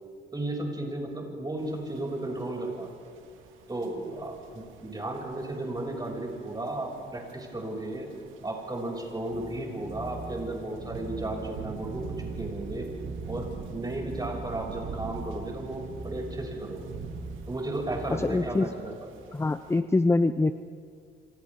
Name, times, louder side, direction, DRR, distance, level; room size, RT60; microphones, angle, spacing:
voice 1, 0.3-2.9 3.7-8.1 8.4-12.9 13.3-16.9 17.5-18.9, right 2 dB, 20° right, -1 dB, 6.8 m, -34 dB
sound 1, 1.6-19.8, right 6 dB, 80° right, 2.2 m, -45 dB
sound 2, 9.3-18.5, right 2 dB, 65° right, 4.0 m, -42 dB
voice 2, 18.1-18.7 19.3-20.5, left 3 dB, 15° left, 11 dB, 0.6 m, -24 dB
27.5 x 27.5 x 3.8 m, 2.1 s
cardioid pair, 90°, 20 cm